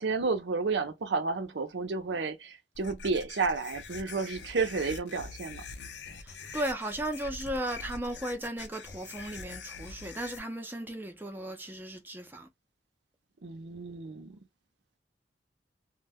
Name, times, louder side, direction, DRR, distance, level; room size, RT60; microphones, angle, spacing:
voice 1, 0.0-5.6 13.4-14.4, right 4 dB, 75° right, 0.6 m, -31 dB
sound 1, 2.7-10.4, left 5 dB, 70° left, 0.6 m, -44 dB
voice 2, 6.2-12.5, right 1 dB, 10° right, 0.5 m, -36 dB
2.1 x 2.1 x 3.4 m
head